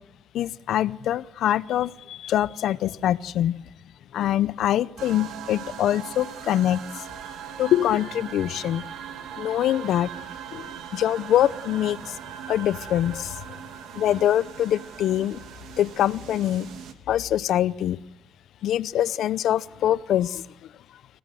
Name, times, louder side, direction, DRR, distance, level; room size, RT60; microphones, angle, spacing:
voice 1, 0.3-3.6 4.1-6.8 7.6-8.8 9.4-10.1 10.5-12.1 12.5-13.4 13.9-15.4 15.8-16.7 17.1-18.0 18.6-20.4, left 11 dB, 75° left, 17 dB, 0.8 m, -24 dB
sound 1, 5.0-16.9, right 8 dB, 85° right, 2.4 m, -40 dB
25.5 x 17.5 x 7.7 m, 0.90 s
cardioid pair, 90°, 0 cm